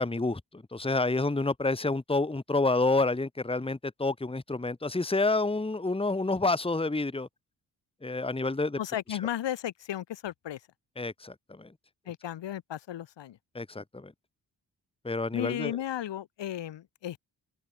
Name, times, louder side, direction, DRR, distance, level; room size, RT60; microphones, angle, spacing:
voice 1, 0.0-7.3 8.0-8.8 11.0-11.7 13.5-14.1 15.0-15.8, left 3 dB, 15° left, 1.5 m, -29 dB
voice 2, 8.8-10.6 12.1-13.4 15.3-17.2, left 11 dB, 80° left, 1.9 m, -34 dB
open air
supercardioid pair, 50°, 43 cm